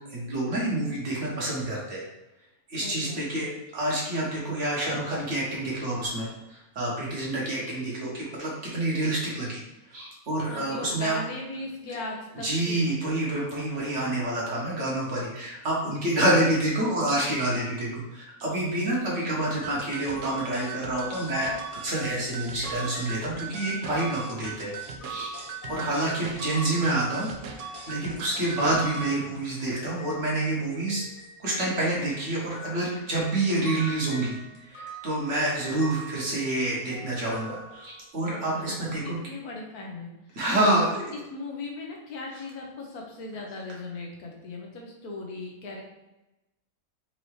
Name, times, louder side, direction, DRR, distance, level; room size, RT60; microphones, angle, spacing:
voice 1, 0.1-2.0 2.7-3.5 3.7-9.6 9.9-11.2 12.4-21.5 21.8-24.7 25.1-25.3 25.7-27.3 27.5-31.0 31.4-34.4 34.6-39.2 40.3-41.1, right 1 dB, 55° right, -5 dB, 1.4 m, -28 dB
voice 2, 2.8-3.4 10.5-13.2 25.7-26.2 28.7-29.0 38.3-45.8, left 2 dB, 75° left, 0 dB, 1.3 m, -39 dB
sound 1, 19.6-29.2, right 5 dB, 80° right, 0.5 m, -39 dB
sound 2, 20.1-30.5 30.9-38.2, right 2 dB, 35° left, 0.9 m, -44 dB
4.5 x 2.7 x 3.1 m, 0.96 s
omnidirectional pair, 1.6 m